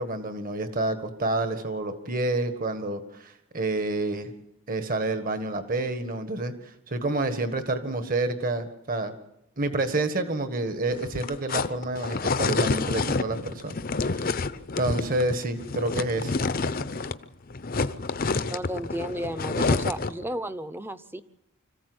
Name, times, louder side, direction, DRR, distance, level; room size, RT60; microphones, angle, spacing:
voice 1, 0.0-4.3 4.7-6.5 6.9-9.1 9.6-13.7 14.1-14.3 14.8-16.3, right 2 dB, 40° right, 9 dB, 1.6 m, -28 dB
sound 1, 10.9-17.2 17.5-20.2, left 3 dB, 40° left, 0.7 m, -28 dB
voice 2, 18.5-21.2, right 1 dB, 10° right, 12 dB, 0.8 m, -33 dB
25.5 x 15.0 x 7.9 m, 0.89 s
head